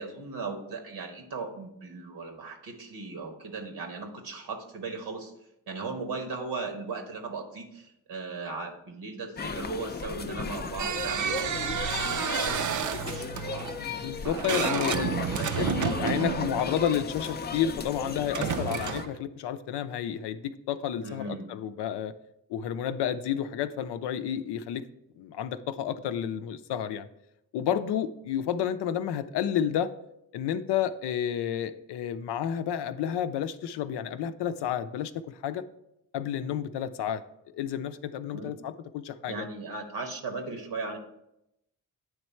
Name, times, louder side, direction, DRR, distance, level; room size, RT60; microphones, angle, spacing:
voice 1, 0.0-5.3 5.7-13.7 14.2-16.4 21.0-21.5 38.3-38.5 39.3-41.0, right 4 dB, 75° right, 4 dB, 1.1 m, -38 dB
sound 1, 9.4-19.1, left 5 dB, 25° left, 0.4 m, -35 dB
sound 2, 10.8-17.4 18.2-19.2, right 8 dB, 50° right, 0.5 m, -31 dB
voice 2, 13.8-15.1 15.6-22.1 22.5-24.8 25.2-27.1 27.5-29.9 30.3-35.6 36.1-37.2 37.5-39.5, left 9 dB, 80° left, 11 dB, 0.5 m, -31 dB
8.8 x 3.2 x 4.4 m, 0.84 s
supercardioid pair, 50°, 40 cm